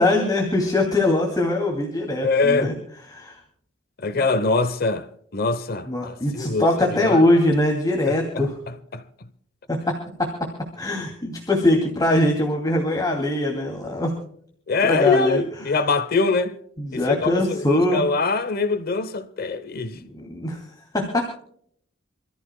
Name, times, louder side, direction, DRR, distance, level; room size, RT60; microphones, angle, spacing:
voice 1, 0.0-2.7 3.1-3.4 4.1-4.2 5.9-8.5 9.7-10.5 10.8-14.1 14.8-15.4 15.7-15.8 16.8-18.0 20.0-20.6 20.9-21.4, left 1 dB, 20° left, 2.5 m, -22 dB
voice 2, 2.2-2.7 4.0-7.2 8.3-9.0 14.7-16.5 17.2-19.9, left 3 dB, 50° left, 0.9 m, -23 dB
28.0 x 14.0 x 2.2 m
head